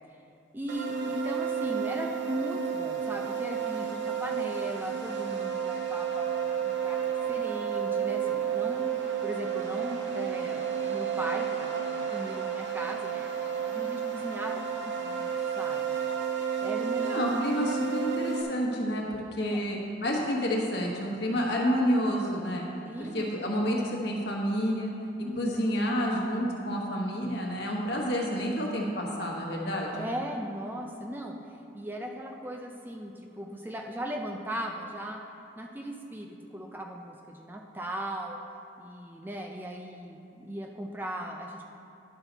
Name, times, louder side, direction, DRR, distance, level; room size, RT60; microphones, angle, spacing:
voice 1, 0.5-8.9 9.2-16.0 16.6-17.4 19.4-19.6 22.8-23.3 25.2-25.7 29.9-31.4 31.7-35.2 35.6-38.4 38.8-41.7, equal, 10° right, 1 dB, 0.4 m, -38 dB
sound 1, 0.7-18.4, right 7 dB, 65° right, 0.9 m, -31 dB
voice 2, 17.0-22.6 23.1-24.9 25.4-30.1, equal, 55° left, -2 dB, 1.3 m, -29 dB
11.5 x 5.7 x 4.0 m, 2.7 s
head